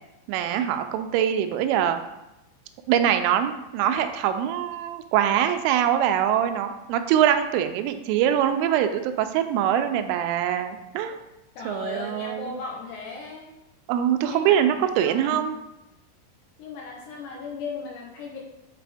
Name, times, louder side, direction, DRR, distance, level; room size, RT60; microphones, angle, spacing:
voice 1, 0.3-2.0 2.9-11.2 11.7-12.5 13.9-15.6, right 10 dB, 90° right, 8 dB, 3.1 m, -23 dB
voice 2, 11.6-13.5 14.3-15.5 16.6-18.4, left 4 dB, 75° left, -1 dB, 2.6 m, -37 dB
9.1 x 4.2 x 3.4 m, 0.93 s
omnidirectional pair, 5.5 m